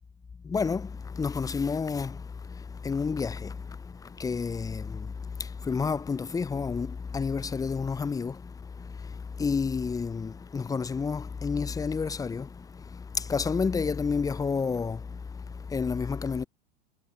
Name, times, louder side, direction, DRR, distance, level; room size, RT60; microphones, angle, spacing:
voice 1, 0.4-16.5, left 5 dB, 10° left, 0.8 m, -31 dB
figure-of-eight pair, 85°, 29 cm